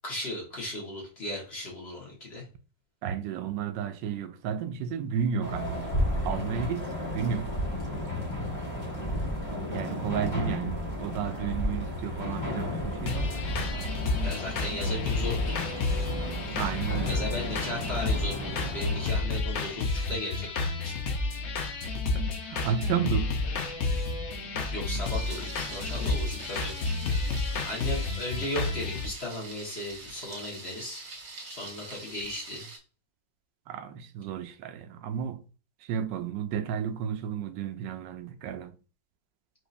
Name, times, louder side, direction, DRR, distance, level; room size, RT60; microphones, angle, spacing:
voice 1, 0.0-2.5 14.1-15.6 17.0-20.9 24.7-26.8 27.6-31.1 31.4-32.7, left 1 dB, 35° left, 1.7 m, -36 dB
voice 2, 3.0-6.0 6.2-7.6 9.7-13.3 16.6-17.2 22.1-23.4 33.7-35.4 35.8-38.8, right 8 dB, 80° right, 1.2 m, -32 dB
sound 1, 5.4-19.1, left 1 dB, 15° left, 1.2 m, -33 dB
sound 2, 13.1-29.0, left 3 dB, 55° left, 0.8 m, -30 dB
Thunder, 25.0-32.8, right 3 dB, 55° right, 1.7 m, -44 dB
5.0 x 4.1 x 2.5 m
omnidirectional pair, 1.9 m